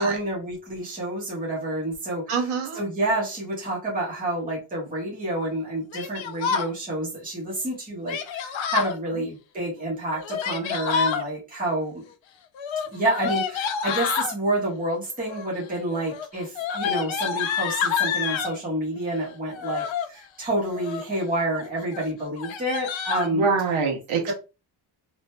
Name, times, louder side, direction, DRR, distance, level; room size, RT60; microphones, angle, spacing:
voice 1, 0.0-2.5 2.7-12.0 12.9-23.5 24.3-24.4, right 1 dB, 15° right, 1.3 m, -28 dB
voice 2, 2.3-2.8 23.3-24.3, right 5 dB, 90° right, 1.2 m, -24 dB
Yell, 5.9-6.7 8.1-9.0 10.1-11.2 12.5-14.3 15.2-15.6 15.9-18.6 19.5-20.1 20.6-21.2 21.5-21.7 21.9-22.1 22.4-23.3, left 7 dB, 70° left, 0.6 m, -28 dB
3.8 x 3.0 x 2.2 m
wide cardioid pair, 170°, 49 cm